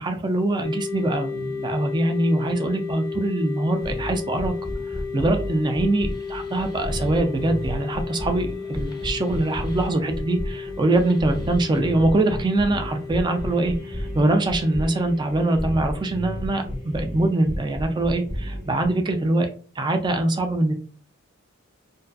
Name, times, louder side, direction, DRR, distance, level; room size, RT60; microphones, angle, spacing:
voice 1, 0.0-4.5 5.1-19.5 19.8-20.7, right 2 dB, 20° right, 6 dB, 0.3 m, -23 dB
sound 1, 0.6-18.0, left 5 dB, 80° left, 0.5 m, -35 dB
sound 2, 3.7-18.9, equal, 20° left, 0.7 m, -33 dB
2.5 x 2.2 x 2.3 m, 0.41 s
head